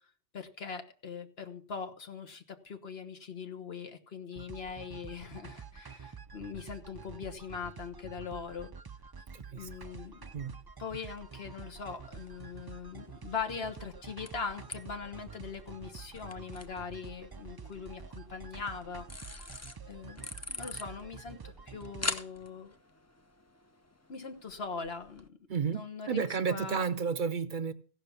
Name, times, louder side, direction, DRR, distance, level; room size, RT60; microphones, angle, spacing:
voice 1, 0.3-8.7 9.5-10.3 10.8-20.3 20.5-21.4 21.7-22.7 24.1-25.4 25.7-26.8, left 5 dB, 70° left, 1.5 m, -41 dB
sound 1, 4.4-22.1, right 5 dB, 35° right, 0.4 m, -48 dB
voice 2, 9.3-9.7 10.3-10.6 25.5-27.7, right 6 dB, 55° right, 0.8 m, -32 dB
sound 2, 11.2-25.3, left 2 dB, 20° left, 0.5 m, -46 dB
15.5 x 5.9 x 6.9 m
omnidirectional pair, 1.1 m